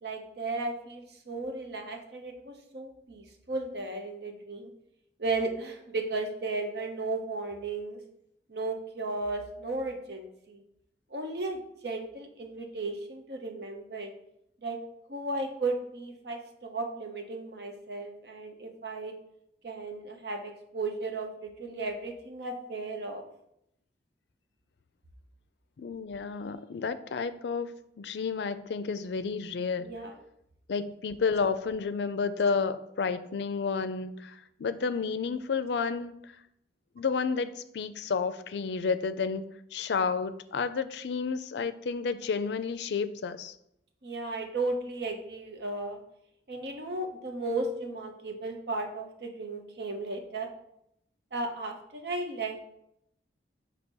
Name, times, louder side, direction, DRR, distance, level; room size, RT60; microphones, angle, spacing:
voice 1, 0.0-4.7 5.2-8.0 8.5-10.6 11.1-14.1 14.6-14.8 15.1-19.1 19.6-23.2 29.8-30.2 44.0-46.0 46.5-50.5 51.3-52.6, right 2 dB, 65° right, 4 dB, 0.9 m, -35 dB
voice 2, 25.8-27.7 28.0-29.9 30.7-36.2 37.0-39.4 39.7-43.6, left 5 dB, 70° left, 12 dB, 0.4 m, -31 dB
6.2 x 2.9 x 5.3 m, 0.77 s
head